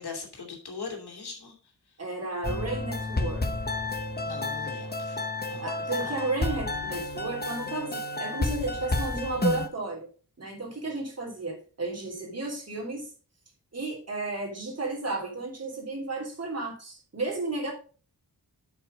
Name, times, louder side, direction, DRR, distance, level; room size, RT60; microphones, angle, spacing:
voice 1, 0.0-1.5 4.2-5.2 5.5-5.6 6.0-6.1, left 4 dB, 80° left, 2 dB, 2.9 m, -40 dB
voice 2, 2.0-3.5 5.6-10.1 10.4-13.1 13.7-17.7, right 2 dB, 40° right, 0 dB, 3.2 m, -33 dB
sound 1, 2.4-9.7, left 2 dB, 25° left, 1.0 m, -31 dB
8.0 x 6.2 x 5.2 m, 0.38 s
wide cardioid pair, 105°, 38 cm